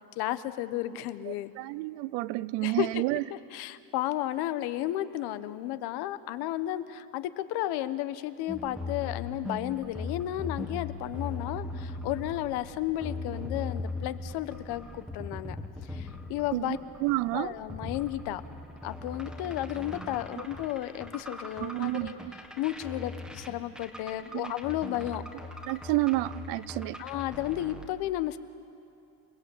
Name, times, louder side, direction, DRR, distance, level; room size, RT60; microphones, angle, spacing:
voice 1, 0.2-1.5 2.6-3.0 3.3-15.6 15.8-16.8 17.3-18.4 18.8-22.2 22.6-25.2 27.0-28.4, left 14 dB, 65° left, 1.2 m, -33 dB
voice 2, 1.3-3.2 16.5-17.5 21.6-22.1 24.3-24.5 25.7-27.0, right 20 dB, 75° right, 0.7 m, -30 dB
sound 1, 8.5-27.9, left 3 dB, ahead, 1.7 m, -39 dB
28.5 x 19.5 x 8.5 m
cardioid pair, 160°, 42 cm